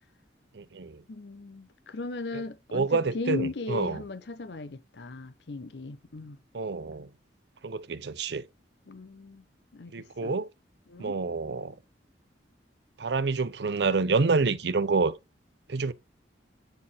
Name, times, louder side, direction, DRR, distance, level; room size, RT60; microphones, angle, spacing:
voice 1, 0.5-1.0 2.3-2.4 2.7-4.0 6.5-7.1 7.6-8.4 9.9-10.5 11.0-11.8 13.0-15.1 15.7-15.9, right 4 dB, 65° right, 0.6 m, -28 dB
voice 2, 1.1-6.4 8.9-9.4 9.7-10.3 10.9-11.2, left 3 dB, 65° left, 0.7 m, -37 dB
9.0 x 4.2 x 3.5 m
head